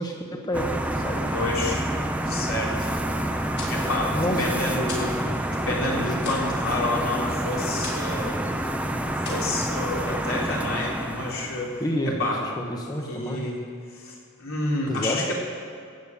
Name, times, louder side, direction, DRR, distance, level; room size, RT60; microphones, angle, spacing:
voice 1, 0.0-1.3 3.8-5.0 5.9-6.0 11.8-13.5 14.9-15.3, equal, 20° left, 1 dB, 1.0 m, -29 dB
sound 1, 0.5-11.8, right 1 dB, 5° right, 0.7 m, -28 dB
voice 2, 1.3-1.8 2.2-2.9 3.7-5.2 5.4-8.4 9.1-11.7 12.0-12.4 13.1-13.6 13.9-15.3, left 2 dB, 75° left, -3 dB, 3.4 m, -29 dB
sound 2, 3.5-5.2 5.5-8.2 8.5-8.8 9.2-10.3, left 3 dB, 55° left, 4.5 m, -39 dB
14.0 x 8.7 x 8.4 m, 2.3 s
head